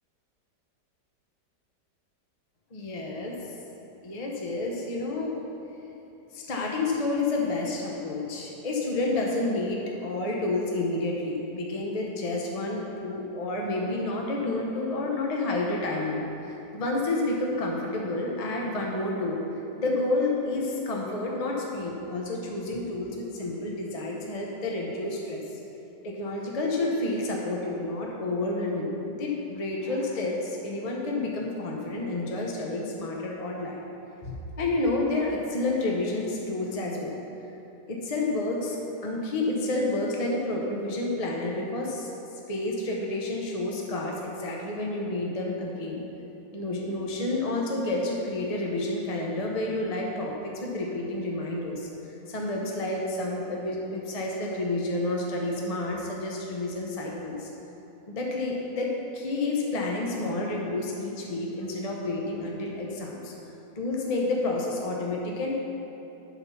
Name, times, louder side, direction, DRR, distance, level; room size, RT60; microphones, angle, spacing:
voice 1, 2.7-3.4 4.0-5.4 6.3-19.4 19.8-25.4 26.0-33.8 34.2-37.2 37.9-38.8 39.0-42.1 42.5-46.0 46.5-57.5 58.1-63.3 63.8-65.5, left 2 dB, 35° left, -1 dB, 0.6 m, -30 dB
11.0 x 4.1 x 5.6 m, 3.0 s
omnidirectional pair, 1.8 m